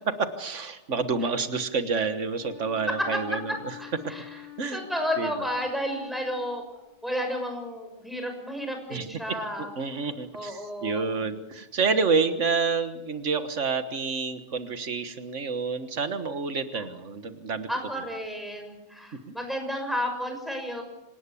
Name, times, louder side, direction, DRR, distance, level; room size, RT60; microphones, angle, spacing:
voice 1, 0.2-3.5 4.6-4.8 5.2-5.3 8.9-9.1 9.8-17.7, right 4 dB, 90° right, 10 dB, 1.8 m, -28 dB
Wind instrument woodwind instrument, 2.3-7.1, left 12 dB, 20° right, 6.6 m, -46 dB
voice 2, 3.8-4.4 4.7-6.6 7.0-9.7 10.3-11.2 16.7-16.9 17.7-20.8, equal, ahead, 4 dB, 6.2 m, -32 dB
26.5 x 18.5 x 8.5 m, 0.92 s
omnidirectional pair, 1.2 m